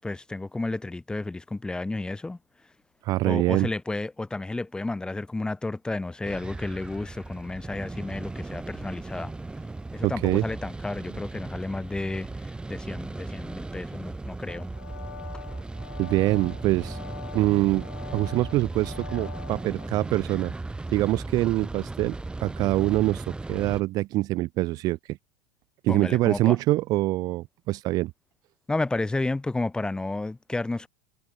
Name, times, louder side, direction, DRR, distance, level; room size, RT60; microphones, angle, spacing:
voice 1, 0.0-2.4 3.2-9.3 9.9-14.7 25.9-26.6 28.7-30.9, left 2 dB, 10° left, 7.1 m, -32 dB
voice 2, 3.0-3.7 10.0-10.4 16.0-17.0 17.3-17.9 18.1-20.5 20.9-22.2 22.4-25.2 25.8-28.1, right 18 dB, 45° right, 0.7 m, -24 dB
sound 1, 6.2-23.8, right 2 dB, 10° right, 7.7 m, -37 dB
sound 2, 14.5-19.9, left 10 dB, 90° left, 5.8 m, -44 dB
hypercardioid pair, 100°, 9 cm